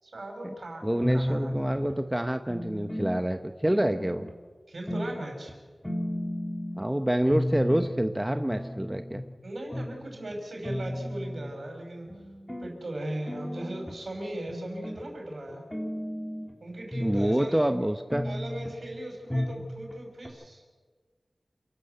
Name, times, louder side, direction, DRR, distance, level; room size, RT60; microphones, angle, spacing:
voice 1, 0.0-1.5 4.7-5.6 9.4-12.1 12.6-15.6 16.6-17.6 18.2-20.6, right 1 dB, 70° right, 2 dB, 5.6 m, -38 dB
voice 2, 0.8-4.3 6.8-9.2 17.0-18.3, right 1 dB, 15° right, 8 dB, 0.9 m, -27 dB
sound 1, 1.0-2.0 2.5-3.2 3.7-4.3 4.9-5.2 5.5-5.6 5.8-6.8 7.3-7.9 8.3-9.3 9.7-9.9 10.3-10.4 10.6-11.5 12.1-12.7 13.3-13.9 14.5-15.0 15.5-16.5 16.9-17.5 18.1-18.7 19.3-19.6 19.9-20.0 20.2-20.3, left 1 dB, 10° left, 3.4 m, -33 dB
28.0 x 12.5 x 8.0 m, 1.5 s
wide cardioid pair, 65°, 0 cm